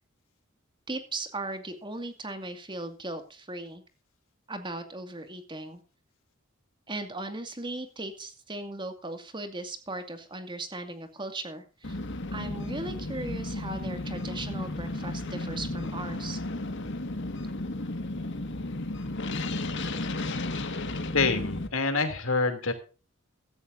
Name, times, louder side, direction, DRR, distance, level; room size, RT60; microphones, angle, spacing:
voice 1, 0.9-3.8 4.5-5.8 6.9-12.0 12.3-16.4, right 2 dB, 25° right, 7 dB, 2.3 m, -37 dB
sound 1, 11.8-21.7, left 2 dB, 60° left, 1.9 m, -33 dB
voice 2, 21.1-22.7, left 4 dB, 85° left, 8 dB, 3.0 m, -26 dB
16.5 x 13.5 x 2.7 m, 0.34 s
head